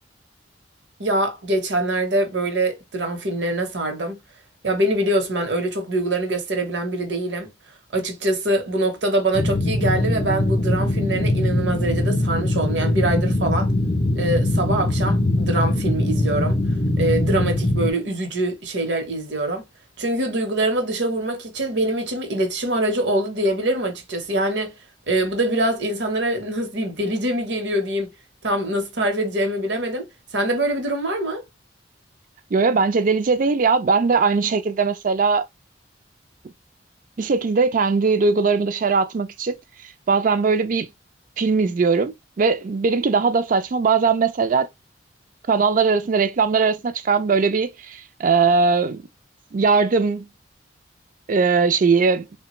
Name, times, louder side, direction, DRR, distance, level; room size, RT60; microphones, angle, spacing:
voice 1, 1.0-4.2 4.6-7.5 7.9-13.7 14.2-16.6 17.0-19.6 20.0-24.7 25.1-28.1 28.4-30.1 30.3-31.4, right 1 dB, 75° right, 0.9 m, -24 dB
sound 1, 9.3-17.9, left 1 dB, 40° left, 0.5 m, -21 dB
voice 2, 32.5-35.5 37.2-39.6 39.8-40.9 41.4-44.7 45.5-49.0 49.5-50.3 51.3-52.3, right 4 dB, 45° right, 0.4 m, -20 dB
3.2 x 2.2 x 2.9 m
head